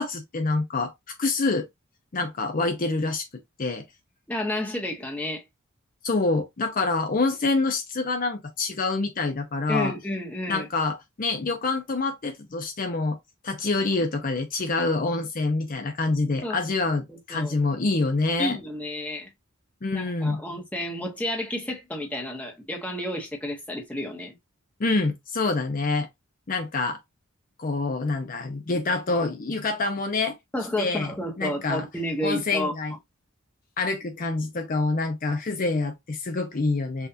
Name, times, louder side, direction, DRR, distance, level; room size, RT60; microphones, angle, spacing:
voice 1, 0.0-1.7 2.1-3.2 3.6-3.8 6.0-9.9 10.5-13.2 13.4-18.6 19.8-20.4 24.8-26.1 26.5-27.0 27.6-30.4 30.8-31.9 32.2-32.9 33.8-37.1, left 3 dB, 40° left, 0.6 m, -26 dB
voice 2, 4.3-5.4 9.7-10.7 16.4-16.8 17.1-17.6 18.4-19.3 19.9-24.3 30.5-32.7, left 1 dB, 5° left, 1.0 m, -31 dB
5.7 x 2.5 x 2.8 m
head